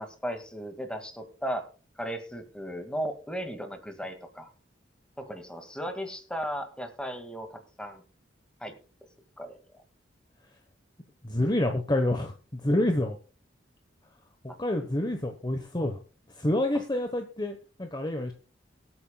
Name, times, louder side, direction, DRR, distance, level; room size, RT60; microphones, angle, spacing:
voice 1, 0.0-1.7 2.0-4.5 5.2-8.0 8.6-8.7 9.4-9.6 14.5-14.6, equal, 5° left, 6 dB, 1.9 m, -36 dB
voice 2, 11.2-13.2 14.6-15.9 16.4-18.3, left 1 dB, 20° left, 5 dB, 1.0 m, -28 dB
24.0 x 8.8 x 2.3 m, 0.37 s
head